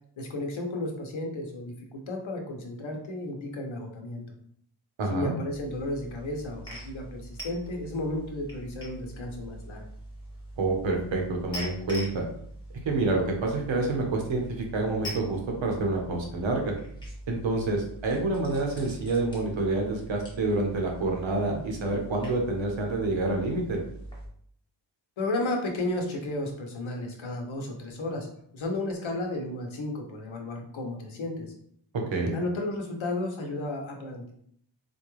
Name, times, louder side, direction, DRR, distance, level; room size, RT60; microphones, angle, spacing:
voice 1, 0.2-4.2 5.1-9.9 21.5-21.6 25.2-28.3 28.5-31.5 32.3-34.3, left 2 dB, 75° left, 2 dB, 0.9 m, -33 dB
voice 2, 5.0-5.4 10.6-12.2 12.9-16.7 17.3-23.8 32.1-32.4, right 2 dB, 70° right, 1 dB, 1.0 m, -28 dB
sound 1, 5.5-24.3, right 1 dB, 10° left, 1.1 m, -43 dB
4.3 x 2.3 x 3.1 m, 0.65 s
wide cardioid pair, 155°, 47 cm